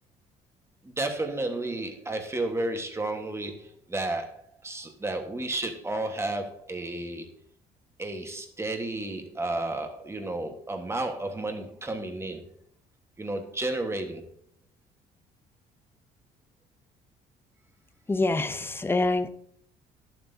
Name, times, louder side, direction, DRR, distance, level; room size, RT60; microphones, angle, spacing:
voice 1, 0.8-7.3 8.0-12.5 13.2-14.3, right 2 dB, 15° right, 5 dB, 1.3 m, -32 dB
voice 2, 18.1-19.3, left 2 dB, 15° left, 11 dB, 0.6 m, -25 dB
11.5 x 7.5 x 2.7 m, 0.65 s
cardioid pair, 110°, 17 cm